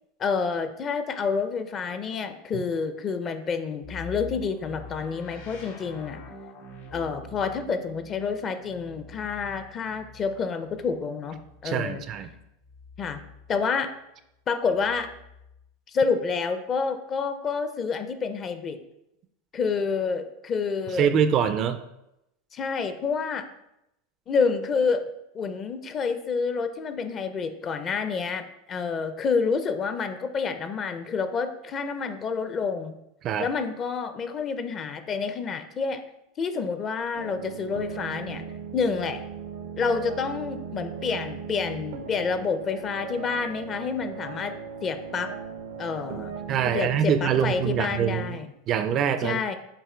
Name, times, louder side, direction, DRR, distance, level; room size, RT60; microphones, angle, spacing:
voice 1, 0.2-6.2 6.9-12.0 13.0-13.2 13.5-13.9 14.5-15.1 15.9-18.8 19.5-21.1 22.5-23.4 24.3-25.0 25.3-32.9 33.4-36.0 36.4-38.5 38.7-39.2 39.8-44.5 44.8-45.3 45.8-46.3 46.7-48.5 49.2-49.6, left 5 dB, 30° left, 9 dB, 0.5 m, -28 dB
sound 1, 3.8-13.6 14.7-15.7, left 3 dB, 85° left, 1.5 m, -46 dB
voice 2, 11.6-12.3 21.0-21.8 33.2-33.5 46.5-48.4 48.7-49.4, right 8 dB, 35° right, 11 dB, 0.4 m, -24 dB
sound 2, 37.1-48.3, right 6 dB, 90° right, 0.8 m, -38 dB
7.4 x 2.6 x 5.0 m, 0.84 s
supercardioid pair, 145°, 0 cm